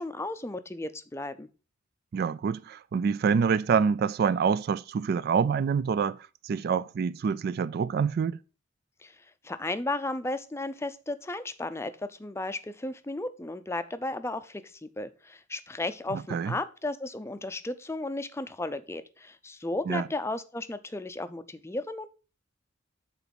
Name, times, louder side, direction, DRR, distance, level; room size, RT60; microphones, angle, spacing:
voice 1, 0.0-1.5 9.0-9.2 9.4-22.1, left 2 dB, 15° left, 0.5 m, -34 dB
voice 2, 2.1-6.2 6.4-8.4 16.1-16.6 19.9-20.0, right 6 dB, 50° right, 0.3 m, -26 dB
8.3 x 4.1 x 5.1 m
head